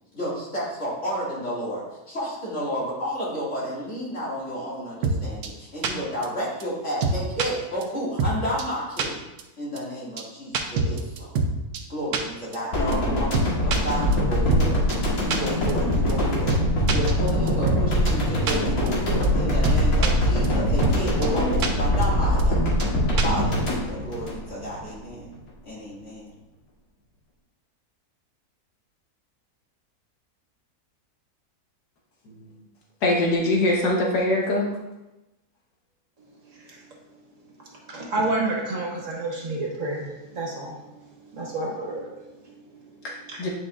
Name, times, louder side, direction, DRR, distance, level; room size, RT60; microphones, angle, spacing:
voice 1, 0.1-9.2 9.6-11.3 11.9-14.8 15.2-22.6 23.2-25.3 25.6-26.3, equal, 50° left, -7 dB, 2.5 m, -31 dB
sound 1, 5.0-5.2 5.4-5.5 5.8-5.9 6.2-6.3 6.6-6.7 7.0-7.5 7.8-7.9 8.2-8.3 8.6-8.7 9.0-9.1 9.4-9.5 9.8-9.9 10.2-10.3 10.5-11.5 11.7-11.8 12.1-12.2 12.5-12.6 12.9-13.0 13.3-13.8 14.1-14.2 14.5-14.6 14.9-15.0 15.3-15.4 15.7-15.8 16.1-16.2 16.5-16.6 16.9-17.8 18.1-18.2 18.5-18.6 18.9-19.0 19.2-19.3 19.6-20.1 20.4-20.5 20.8-21.0 21.2-21.3 21.6-21.7 22.0-22.1 22.4-22.5 22.8-22.9 23.2-23.4, right 4 dB, 75° right, 1.2 m, -24 dB
sound 2, 12.7-24.9 25.2-25.4, equal, 70° left, 2.1 m, -23 dB
voice 2, 33.0-34.7 43.0-43.5, left 1 dB, 90° left, -2 dB, 1.8 m, -23 dB
voice 3, 36.4-36.9 37.8-43.0 43.3-43.4, right 2 dB, 55° right, -2 dB, 1.5 m, -30 dB
9.5 x 5.0 x 2.5 m, 0.98 s
omnidirectional pair, 1.7 m